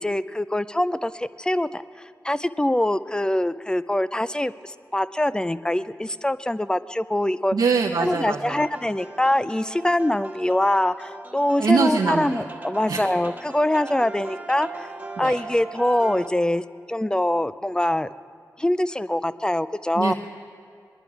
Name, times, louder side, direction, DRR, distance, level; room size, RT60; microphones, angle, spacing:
voice 1, 0.0-7.5 8.0-14.9 15.2-18.1 18.6-20.1, left 1 dB, 10° left, 15 dB, 0.5 m, -24 dB
voice 2, 7.5-8.6 11.6-12.4 12.9-13.1 15.2-15.3 20.0-20.1, right 5 dB, 75° right, 1 dB, 0.8 m, -23 dB
sound 1, 8.5-16.3, right 2 dB, 25° right, 1.5 m, -39 dB
20.0 x 11.0 x 4.9 m, 2.4 s
cardioid pair, 45°, 7 cm